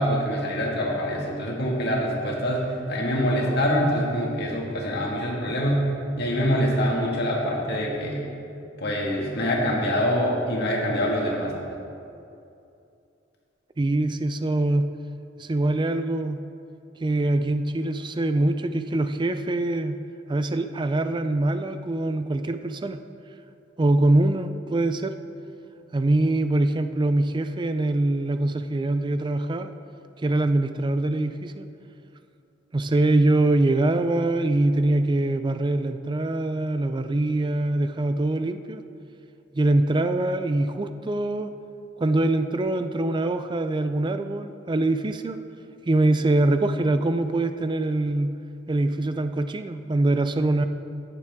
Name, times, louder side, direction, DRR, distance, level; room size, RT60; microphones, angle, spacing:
voice 1, 0.0-5.9 6.2-8.2 8.8-11.5, equal, 60° left, -2 dB, 1.9 m, -25 dB
voice 2, 13.8-14.9 15.4-16.4 17.0-20.0 20.3-23.0 23.8-25.1 25.9-29.7 30.2-31.6 32.7-38.8 39.5-41.5 42.0-45.4 45.9-48.3 48.7-50.7, right 2 dB, 25° right, 9 dB, 0.4 m, -23 dB
15.0 x 9.8 x 3.6 m, 2.6 s
head